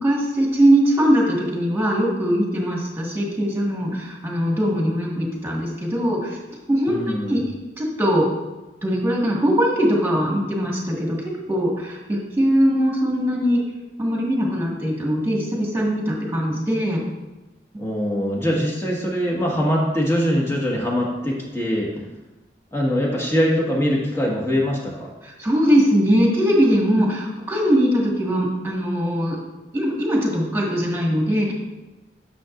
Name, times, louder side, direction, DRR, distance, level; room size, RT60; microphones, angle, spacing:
voice 1, 0.0-6.4 6.7-7.0 7.2-7.4 7.8-8.2 8.8-11.2 11.5-13.6 14.0-17.0 25.2-29.4 29.7-31.5, equal, 15° right, -3 dB, 1.7 m, -21 dB
voice 2, 6.9-7.3 17.8-21.9 22.7-25.1, equal, 15° left, -3 dB, 1.6 m, -22 dB
9.6 x 7.0 x 2.6 m, 1.1 s
head